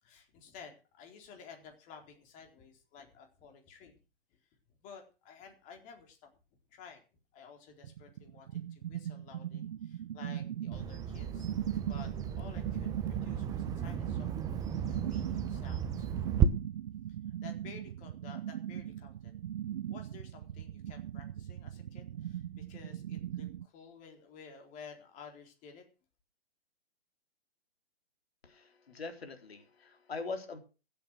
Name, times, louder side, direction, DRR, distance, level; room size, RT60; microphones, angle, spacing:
voice 1, 0.0-4.0 4.8-6.3 6.7-7.0 7.3-11.5 11.9-16.1 17.4-19.3 19.9-25.8, left 6 dB, 25° left, 4 dB, 4.1 m, -53 dB
sound 1, 7.8-23.7, right 11 dB, 55° right, 0.6 m, -40 dB
Bird vocalization bird call bird song, 10.7-16.5, right 8 dB, 10° right, 0.9 m, -34 dB
voice 2, 28.4-30.6, left 4 dB, 75° left, 6 dB, 4.0 m, -42 dB
16.0 x 8.7 x 6.3 m, 0.33 s
hypercardioid pair, 135°, 31 cm